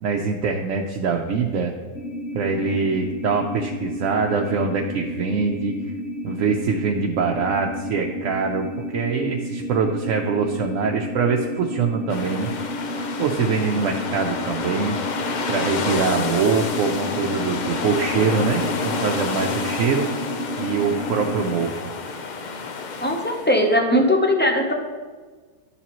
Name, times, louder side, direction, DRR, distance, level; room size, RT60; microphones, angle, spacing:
voice 1, 0.0-1.7 2.3-5.7 6.2-8.7 8.9-12.5 13.2-15.0 15.5-20.1 20.6-21.8, right 5 dB, 70° right, 1 dB, 0.9 m, -23 dB
sound 1, 1.9-21.7, equal, 55° left, 1.1 m, -32 dB
sound 2, 12.1-23.6, left 4 dB, 85° left, 0.4 m, -29 dB
voice 2, 23.0-24.7, left 1 dB, 15° left, 1 dB, 0.4 m, -19 dB
11.0 x 7.0 x 3.0 m, 1.4 s
omnidirectional pair, 1.6 m